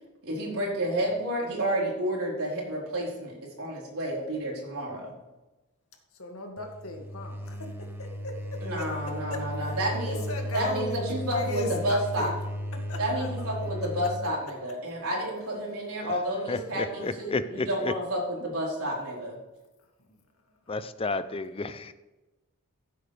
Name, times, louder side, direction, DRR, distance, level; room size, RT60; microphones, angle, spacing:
voice 1, 0.2-5.1 8.6-10.2 10.5-12.3 13.0-19.4, right 1 dB, 80° right, -3 dB, 4.3 m, -30 dB
voice 2, 4.8-5.2 6.1-8.9 9.3-12.3 12.9-13.5 16.4-17.3 18.4-18.5 20.1-20.2, left 2 dB, 75° left, 2 dB, 2.2 m, -38 dB
sound 1, 6.6-14.3, equal, 10° right, 1.1 m, -35 dB
voice 3, 16.5-17.9 20.7-21.9, left 3 dB, 25° left, 13 dB, 0.5 m, -31 dB
15.0 x 8.2 x 3.4 m, 1.1 s
head